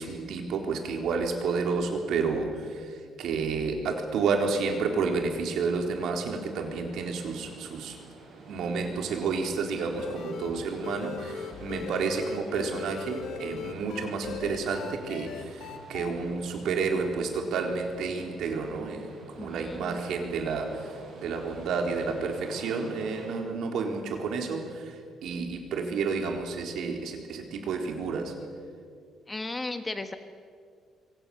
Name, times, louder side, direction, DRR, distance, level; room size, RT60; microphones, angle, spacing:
voice 1, 0.0-8.0 8.5-28.4, right 4 dB, 70° right, 3 dB, 3.9 m, -30 dB
sound 1, 6.0-23.4, right 4 dB, 55° right, 6.5 m, -49 dB
sound 2, 10.0-16.1, left 7 dB, 70° left, 1.8 m, -40 dB
voice 2, 19.4-20.0 29.3-30.2, left 2 dB, 15° left, 8 dB, 1.3 m, -35 dB
26.0 x 24.0 x 7.1 m, 2.1 s
cardioid pair, 140°, 0 cm